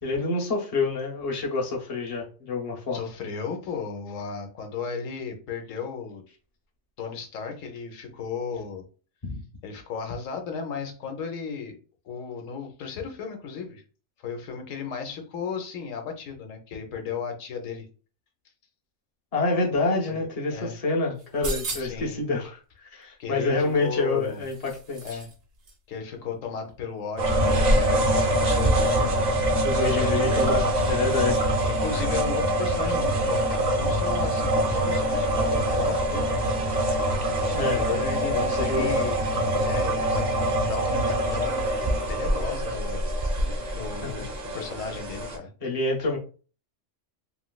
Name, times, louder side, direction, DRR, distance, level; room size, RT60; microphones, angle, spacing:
voice 1, 0.0-3.0 9.2-9.3 19.3-25.2 29.6-31.5 37.5-37.9 38.3-38.9 44.0-44.2 45.6-46.2, left 3 dB, 35° left, -1 dB, 0.8 m, -27 dB
voice 2, 2.9-6.2 7.0-8.8 9.6-11.8 12.0-13.8 14.2-17.9 20.1-20.8 21.8-22.2 23.2-24.4 25.0-25.3 25.9-29.6 29.9-30.7 31.6-36.5 37.6-39.2 39.6-43.0 43.7-45.5, left 6 dB, 90° left, 4 dB, 1.1 m, -35 dB
sound 1, 21.2-22.1 23.6-25.3 25.6-25.7, right 2 dB, 85° right, 1.3 m, -36 dB
sound 2, 27.2-45.4, right 1 dB, 45° right, 0.7 m, -24 dB
3.1 x 3.0 x 2.2 m, 0.37 s
omnidirectional pair, 1.3 m